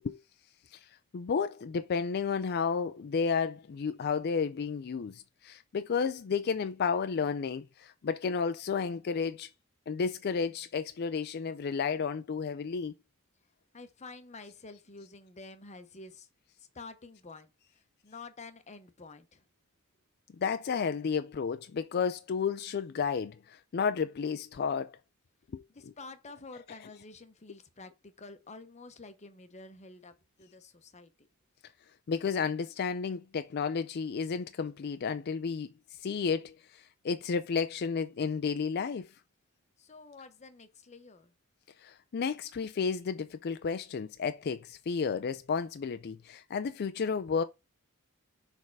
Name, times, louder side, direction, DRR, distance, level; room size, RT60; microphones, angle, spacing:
voice 1, 1.1-9.5 9.9-12.9 20.4-25.0 25.5-25.6 32.1-35.7 36.0-39.1 41.8-47.4, left 5 dB, 50° left, 0.4 m, -32 dB
voice 2, 13.7-16.3 16.6-19.4 25.7-31.3 39.8-41.3, left 3 dB, 30° left, 0.8 m, -49 dB
6.4 x 3.6 x 4.6 m
head